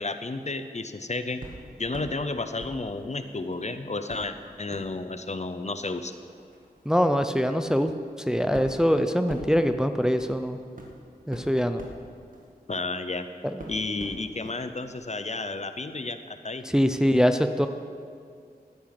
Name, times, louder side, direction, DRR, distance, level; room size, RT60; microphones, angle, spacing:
voice 1, 0.0-1.4 1.8-6.1 12.7-13.3 13.7-16.6, left 3 dB, 45° left, 9 dB, 0.7 m, -32 dB
sound 1, 1.4-2.2 2.6-3.6 4.1-13.2 13.6-14.6 14.9-15.0, right 1 dB, 55° right, 1.9 m, -45 dB
voice 2, 6.9-7.9 8.3-10.6 11.3-11.8 16.7-17.7, equal, 5° right, 8 dB, 0.6 m, -23 dB
12.0 x 10.0 x 5.9 m, 2.2 s
wide cardioid pair, 60°, 17 cm